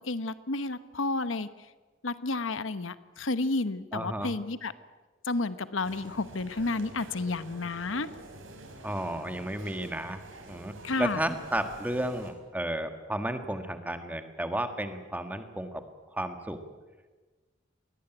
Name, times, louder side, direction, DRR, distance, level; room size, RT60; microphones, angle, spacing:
voice 1, 0.0-1.5 2.0-4.7 5.2-8.1 10.8-11.2, left 3 dB, 90° left, 13 dB, 1.1 m, -31 dB
voice 2, 3.9-4.3 8.8-15.8 16.1-16.6, right 1 dB, 10° right, 7 dB, 1.8 m, -33 dB
sound 1, 5.8-12.3, right 1 dB, 90° right, 4.6 m, -48 dB
22.0 x 18.0 x 9.3 m, 1.3 s
head